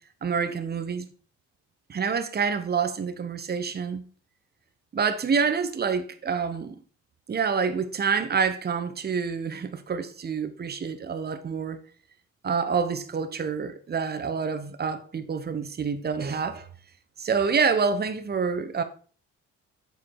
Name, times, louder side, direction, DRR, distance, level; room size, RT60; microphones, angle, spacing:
voice 1, 0.2-1.1 1.9-4.0 4.9-6.7 7.3-11.8 12.4-16.7 17.2-18.8, right 5 dB, 35° right, 0.9 m, -27 dB
6.6 x 4.7 x 4.8 m
cardioid pair, 90°, 30 cm